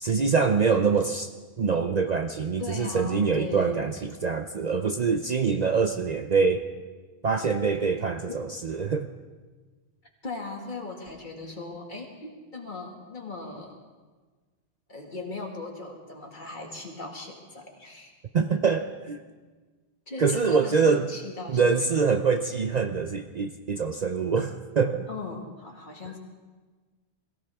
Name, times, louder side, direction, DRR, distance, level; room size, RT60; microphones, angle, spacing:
voice 1, 0.0-1.3 1.6-6.7 7.2-9.1 18.3-19.2 20.2-21.1 21.5-25.1, right 5 dB, 45° right, 7 dB, 0.6 m, -25 dB
voice 2, 2.6-3.9 8.3-8.6 10.2-13.8 14.9-18.1 20.1-21.6 21.9-22.0 25.1-26.2, left 3 dB, 50° left, 1 dB, 2.2 m, -38 dB
22.0 x 16.0 x 3.5 m, 1.4 s
omnidirectional pair, 1.1 m